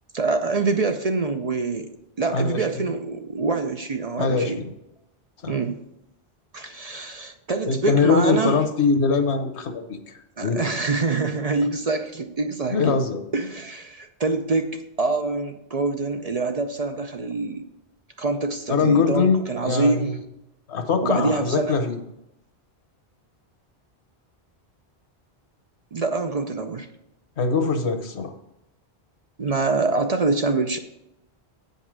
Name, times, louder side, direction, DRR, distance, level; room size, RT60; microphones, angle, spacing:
voice 1, 0.1-1.9 2.2-4.6 5.5-5.8 6.5-8.6 10.4-13.0 13.3-17.6 18.2-20.2 21.0-21.8 25.9-26.9 29.4-30.8, right 3 dB, 45° right, 6 dB, 0.6 m, -25 dB
voice 2, 2.3-2.9 4.2-4.7 5.4-5.5 7.7-10.0 10.4-10.7 12.7-13.2 18.7-20.1 20.7-22.0 27.4-28.3, left 4 dB, 90° left, 7 dB, 1.3 m, -22 dB
8.4 x 5.4 x 6.1 m, 0.85 s
omnidirectional pair, 1.1 m